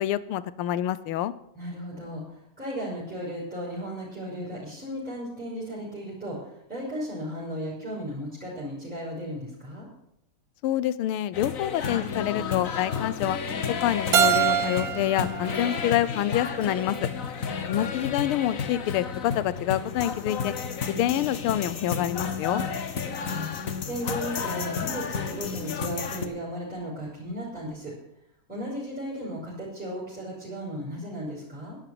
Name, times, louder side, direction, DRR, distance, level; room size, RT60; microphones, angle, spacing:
voice 1, 0.0-1.3 10.6-13.4 13.8-17.1 17.7-20.5 21.0-22.6, left 12 dB, 80° left, 17 dB, 1.6 m, -27 dB
voice 2, 1.5-9.9 17.5-17.9 22.9-23.5 23.9-27.9 28.5-31.8, equal, 5° right, -6 dB, 4.9 m, -35 dB
sound 1, 11.3-26.3, left 6 dB, 45° left, 1.3 m, -32 dB
Keyboard (musical), 14.1-17.0, right 9 dB, 55° right, 1.2 m, -26 dB
11.0 x 11.0 x 7.7 m, 0.78 s
omnidirectional pair, 2.4 m